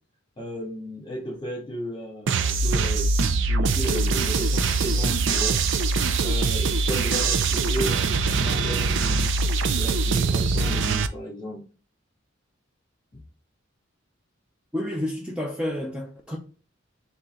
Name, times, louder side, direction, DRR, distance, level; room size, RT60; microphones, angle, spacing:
voice 1, 0.4-5.6 6.2-9.3 9.7-11.7 13.1-13.2, equal, 25° left, 1.4 m, -34 dB
sound 1, 2.3-11.1, right 4 dB, 65° right, 0.4 m, -23 dB
voice 2, 14.7-16.4, left 1 dB, 5° right, 0.5 m, -30 dB
3.8 x 2.8 x 4.3 m
head